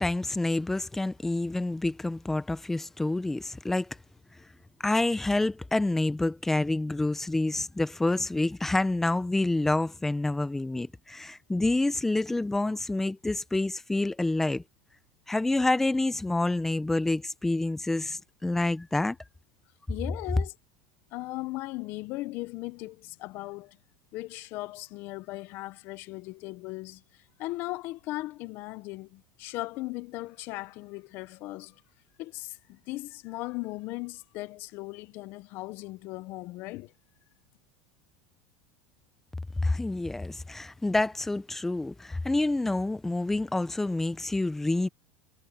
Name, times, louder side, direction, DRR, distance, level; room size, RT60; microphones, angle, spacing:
voice 1, 0.0-4.0 4.8-14.6 15.3-19.2 39.6-44.9, left 2 dB, 5° left, 0.9 m, -28 dB
voice 2, 19.9-20.5 21.1-23.8 24.1-31.8 32.2-36.9, left 20 dB, 55° left, 1.0 m, -38 dB
supercardioid pair, 130°, 4 cm